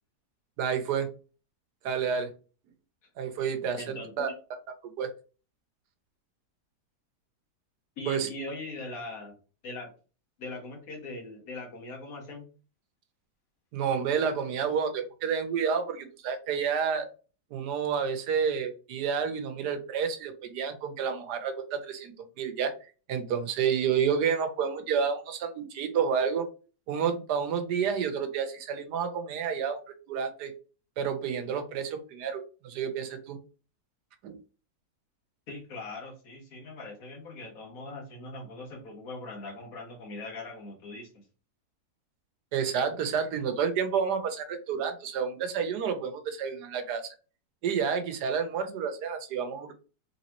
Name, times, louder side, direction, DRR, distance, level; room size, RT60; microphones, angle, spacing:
voice 1, 0.6-1.1 1.8-2.3 3.2-4.3 5.0-5.1 8.1-8.3 13.7-17.1 17.5-26.5 26.9-30.5 31.0-33.4 34.2-34.3 42.5-47.1 47.6-49.7, right 7 dB, 80° right, 7 dB, 1.3 m, -30 dB
voice 2, 3.8-4.4 8.0-9.3 9.6-9.9 10.4-12.5 35.5-41.2, left 2 dB, 60° left, 2 dB, 1.7 m, -40 dB
4.1 x 3.4 x 2.9 m, 0.35 s
omnidirectional pair, 1.7 m